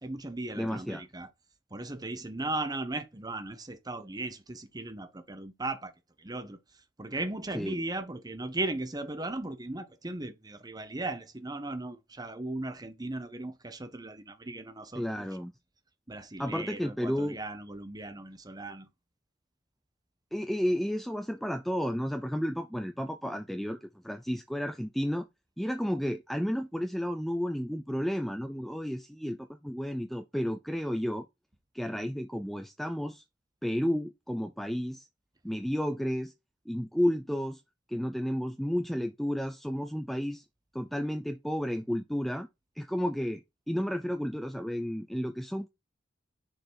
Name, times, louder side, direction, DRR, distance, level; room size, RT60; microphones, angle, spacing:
voice 1, 0.0-1.3 1.7-5.9 6.2-15.4 16.1-18.9, right 2 dB, 20° right, 0.9 m, -37 dB
voice 2, 0.6-1.0 7.5-7.7 15.0-15.5 16.4-17.4 20.3-23.8 24.0-25.3 25.6-31.3 31.7-33.2 33.6-35.0 35.4-36.3 36.7-37.6 37.9-40.4 40.7-42.5 42.8-45.7, equal, ahead, 0.4 m, -32 dB
6.5 x 4.0 x 4.4 m
head